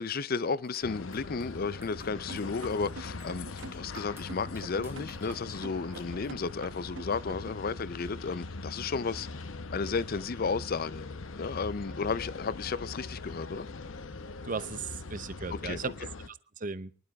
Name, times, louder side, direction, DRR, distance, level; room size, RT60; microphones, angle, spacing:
voice 1, 0.0-9.3 9.7-11.1 11.3-13.7 15.5-15.8, left 4 dB, 50° left, 0.5 m, -33 dB
sound 1, 0.5-6.5, right 2 dB, 10° right, 1.4 m, -58 dB
sound 2, 0.8-16.3, left 3 dB, 80° left, 0.8 m, -42 dB
sound 3, 2.3-7.6, right 3 dB, 65° right, 0.9 m, -45 dB
voice 2, 14.4-15.9 16.2-16.9, right 4 dB, 40° right, 0.7 m, -36 dB
24.5 x 11.5 x 2.4 m
head